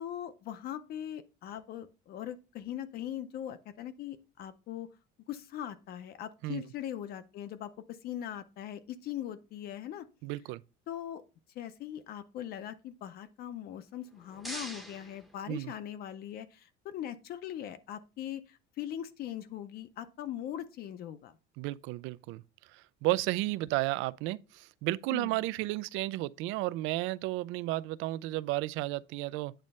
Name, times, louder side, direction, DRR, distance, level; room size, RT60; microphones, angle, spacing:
voice 1, 0.0-4.9 5.3-10.1 10.9-11.2 11.5-21.4 25.1-25.4, left 11 dB, 50° left, 0.6 m, -40 dB
voice 2, 10.2-10.6 15.5-15.7 21.6-22.4 23.0-29.5, right 18 dB, 75° right, 0.4 m, -33 dB
sound 1, 13.9-16.1, right 1 dB, ahead, 0.7 m, -46 dB
8.9 x 3.2 x 5.3 m
cardioid pair, 165°, 21 cm